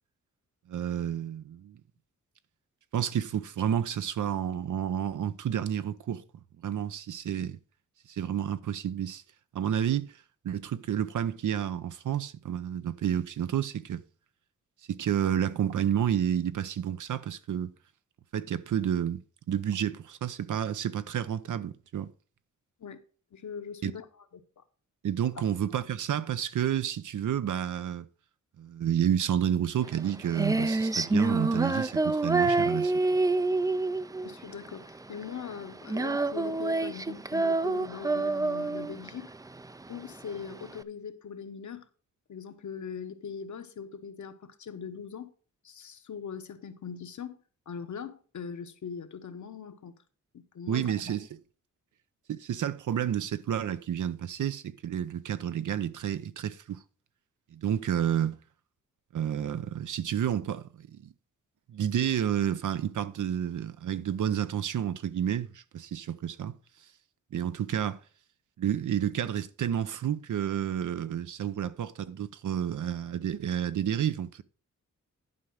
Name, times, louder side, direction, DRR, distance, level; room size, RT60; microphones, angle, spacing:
voice 1, 0.7-1.8 2.9-6.2 6.6-7.6 8.1-9.2 9.5-10.1 10.4-14.0 14.9-17.7 18.3-19.2 19.5-22.1 23.8-23.9 25.0-28.1 28.6-32.9 50.7-51.4 52.3-56.8 57.5-58.4 59.1-61.1 61.7-66.5 67.3-68.0 68.6-74.4, right 9 dB, 80° right, 0.7 m, -30 dB
voice 2, 23.3-24.0 24.6-24.7 34.2-39.3 39.9-41.9 42.3-45.3 45.6-47.4 47.7-49.9 50.3-51.2, left 6 dB, 70° left, 1.1 m, -41 dB
Female singing, 29.8-40.8, right 3 dB, 10° right, 0.3 m, -28 dB
11.0 x 4.9 x 5.5 m
wide cardioid pair, 120°, 30 cm